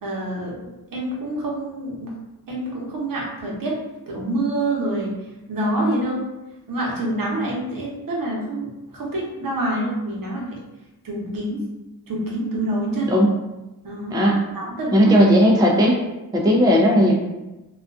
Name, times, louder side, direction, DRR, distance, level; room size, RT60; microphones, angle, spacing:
voice 1, 0.0-2.2 2.5-3.8 4.1-5.1 5.5-6.3 6.7-10.6 11.0-11.6 12.1-13.2 13.8-14.2 14.5-15.2, right 1 dB, 60° right, -3 dB, 0.8 m, -26 dB
voice 2, 14.1-14.4 14.9-16.0 16.3-17.1, equal, 10° right, -1 dB, 0.4 m, -16 dB
2.4 x 2.3 x 2.3 m, 1.0 s
cardioid pair, 70°, 39 cm